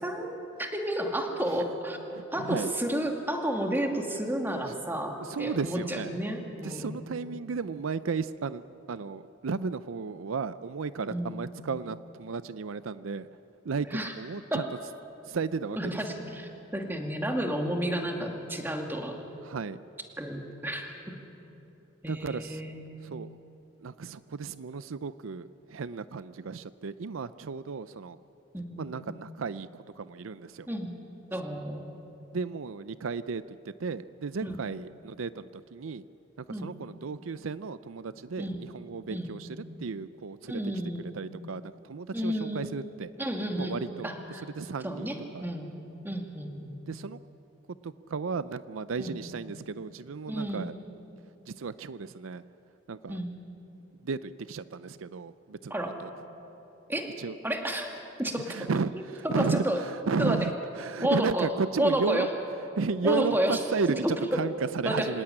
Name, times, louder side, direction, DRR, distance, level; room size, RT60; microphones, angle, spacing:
voice 1, 0.0-2.0 2.3-7.0 11.1-11.4 13.9-14.1 14.5-14.6 15.8-19.2 20.2-21.1 22.0-22.8 28.5-29.0 30.7-31.0 31.3-31.9 34.4-34.5 36.5-36.7 38.4-38.6 39.1-39.3 40.5-41.1 42.1-42.7 43.2-44.5 44.8-45.8 46.0-46.8 49.0-49.2 50.3-50.7 53.1-53.3 55.7-56.0 56.9-57.2 57.4-57.9 58.2-58.7 58.9-59.8 60.2-60.5 61.0-61.5 61.8-62.3 63.0-63.6 64.0-64.4 64.8-65.1, right 1 dB, 10° right, 3 dB, 2.3 m, -31 dB
voice 2, 2.1-2.7 5.2-6.1 6.6-13.3 13.6-14.7 15.3-16.0 19.4-19.8 22.1-22.6 23.0-23.3 23.8-28.2 28.8-30.7 32.3-33.4 33.8-36.0 36.5-43.1 43.6-44.1 44.6-45.5 46.9-47.2 47.8-50.7 51.5-52.4 52.9-53.2 54.0-56.1 57.2-57.4 58.4-62.3 62.8-65.2, right 4 dB, 80° right, 14 dB, 0.5 m, -34 dB
26.0 x 17.5 x 9.9 m, 3.0 s
head